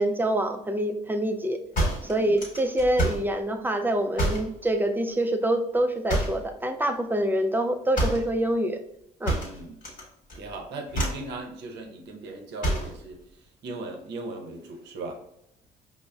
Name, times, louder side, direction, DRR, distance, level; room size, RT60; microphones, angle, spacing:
voice 1, 0.0-1.6 2.0-8.8 9.2-9.4, right 1 dB, 10° right, 7 dB, 0.4 m, -26 dB
sound 1, 1.8-3.3 4.2-4.5 6.1-6.5 7.9-8.3 9.3-10.0 10.3-10.6 10.9-11.3 12.6-13.0, right 1 dB, 40° left, 1.2 m, -27 dB
voice 2, 2.0-2.4 9.3-9.8 10.4-13.2 13.6-15.2, right 2 dB, 60° right, 3 dB, 0.7 m, -38 dB
5.0 x 2.0 x 2.2 m, 0.77 s
hypercardioid pair, 55°, 20 cm